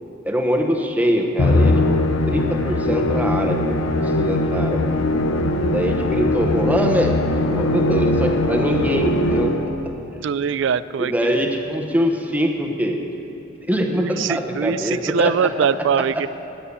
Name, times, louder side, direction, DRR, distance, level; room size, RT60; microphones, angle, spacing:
voice 1, 0.2-2.0 2.3-4.8 5.6-7.2 7.5-10.2 11.0-13.0 13.7-15.5 16.0-16.3, equal, 5° right, 2 dB, 0.9 m, -23 dB
Musical instrument, 1.4-9.9, left 2 dB, 75° left, 0.8 m, -20 dB
voice 2, 10.2-11.4 13.9-16.3, right 7 dB, 60° right, 16 dB, 0.3 m, -22 dB
9.8 x 9.7 x 8.5 m, 2.9 s
head